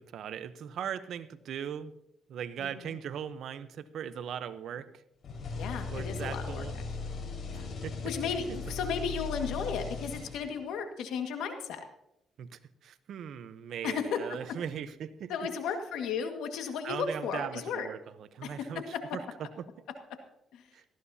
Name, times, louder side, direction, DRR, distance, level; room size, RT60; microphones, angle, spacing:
voice 1, 0.0-2.0 2.3-5.0 5.9-6.8 7.5-8.0 8.5-8.6 12.4-15.3 16.8-19.9 20.7-20.8, right 8 dB, 70° right, 13 dB, 0.8 m, -39 dB
sound 1, 5.2-10.7, left 4 dB, 55° left, 4.9 m, -38 dB
voice 2, 5.5-6.6 7.5-7.7 8.0-11.8 13.8-14.4 15.3-17.9 18.4-18.8 20.5-20.6, left 6 dB, 85° left, 6 dB, 1.8 m, -34 dB
18.5 x 14.0 x 2.8 m, 0.83 s
cardioid pair, 90°, 0 cm